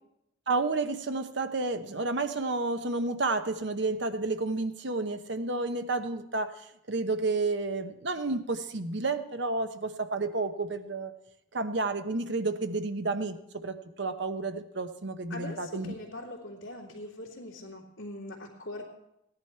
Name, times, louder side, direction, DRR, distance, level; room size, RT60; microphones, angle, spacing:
voice 1, 0.5-11.1 11.5-13.4 13.6-15.9, right 3 dB, 60° right, 8 dB, 0.9 m, -31 dB
voice 2, 15.3-18.8, left 1 dB, 75° left, -7 dB, 2.5 m, -41 dB
16.0 x 10.5 x 4.5 m, 0.84 s
head